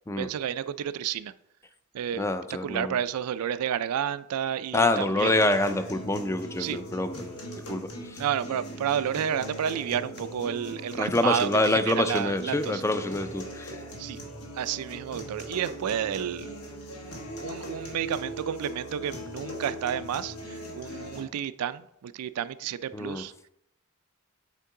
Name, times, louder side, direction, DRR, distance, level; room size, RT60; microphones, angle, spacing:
voice 1, 0.2-1.3 1.9-2.3 2.6-5.3 6.6-6.8 8.2-12.8 14.0-14.2 14.5-16.5 17.4-23.3, right 9 dB, 90° right, 14 dB, 0.3 m, -31 dB
voice 2, 2.2-3.0 4.7-7.4 7.7-8.2 11.0-13.8 22.9-23.5, left 2 dB, 15° left, 10 dB, 0.3 m, -26 dB
sound 1, 5.2-21.2, right 1 dB, 80° left, 1.5 m, -40 dB
8.3 x 4.5 x 3.7 m, 0.77 s
head